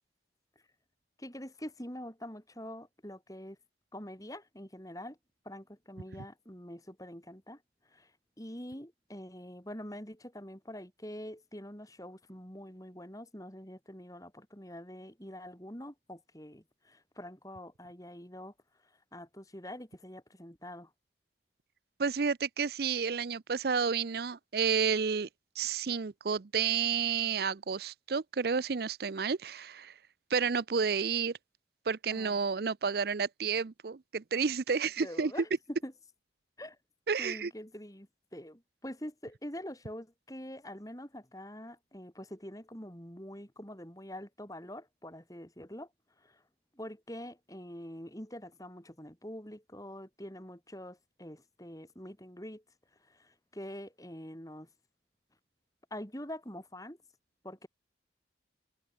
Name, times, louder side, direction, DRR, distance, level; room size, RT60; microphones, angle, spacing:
voice 1, 1.2-3.6 3.9-5.2 5.4-18.5 18.8-20.9 32.1-32.4 35.0-35.9 36.6-36.8 37.2-45.9 46.2-46.4 46.7-52.6 53.0-54.7 55.9-57.0 57.4-57.7, left 1 dB, 20° left, 5.5 m, -45 dB
voice 2, 22.0-25.3 25.6-29.9 30.3-31.4 31.9-35.3 37.1-37.5, right 6 dB, 55° right, 0.5 m, -31 dB
head